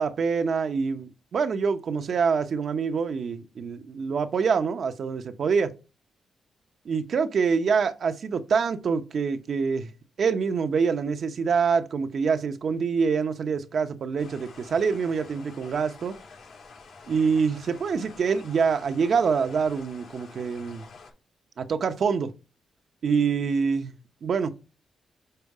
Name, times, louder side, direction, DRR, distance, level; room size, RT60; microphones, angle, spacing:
voice 1, 0.0-5.7 6.8-9.9 10.2-16.1 17.1-20.9 21.6-22.3 23.0-23.9 24.2-24.5, right 5 dB, 55° right, 0.8 m, -25 dB
sound 1, 14.2-21.1, left 4 dB, 90° left, 3.5 m, -48 dB
6.8 x 4.4 x 4.8 m
cardioid pair, 110°, 0 cm